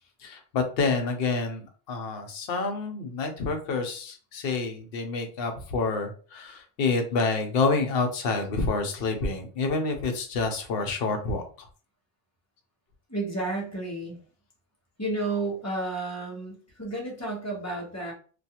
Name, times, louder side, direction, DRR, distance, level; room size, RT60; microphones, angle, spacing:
voice 1, 0.2-11.7, left 3 dB, 70° left, 4 dB, 0.8 m, -28 dB
voice 2, 13.1-14.2 15.0-18.1, right 2 dB, 15° left, -2 dB, 0.8 m, -31 dB
2.3 x 2.3 x 2.8 m, 0.39 s
omnidirectional pair, 1.0 m